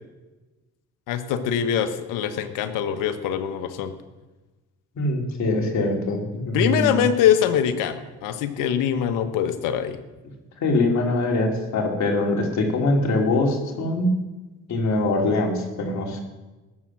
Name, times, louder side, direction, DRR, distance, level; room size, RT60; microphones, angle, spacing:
voice 1, 1.1-3.9 6.5-10.0, left 9 dB, 85° left, 9 dB, 1.3 m, -23 dB
voice 2, 4.9-7.0 10.6-14.1 14.7-16.2, left 2 dB, 60° left, 2 dB, 3.1 m, -23 dB
19.0 x 7.6 x 6.2 m, 1.1 s
supercardioid pair, 75°, 31 cm